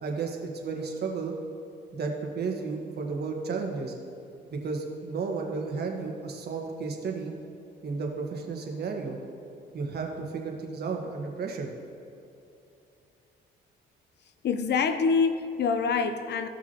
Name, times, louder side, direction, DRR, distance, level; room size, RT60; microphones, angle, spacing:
voice 1, 0.0-1.3 1.9-3.9 4.5-7.3 7.8-9.2 9.7-11.7, right 4 dB, 55° right, 1 dB, 1.4 m, -33 dB
voice 2, 14.4-16.5, left 5 dB, 60° left, 9 dB, 0.7 m, -25 dB
15.0 x 5.8 x 2.9 m, 2.7 s
cardioid pair, 90°, 20 cm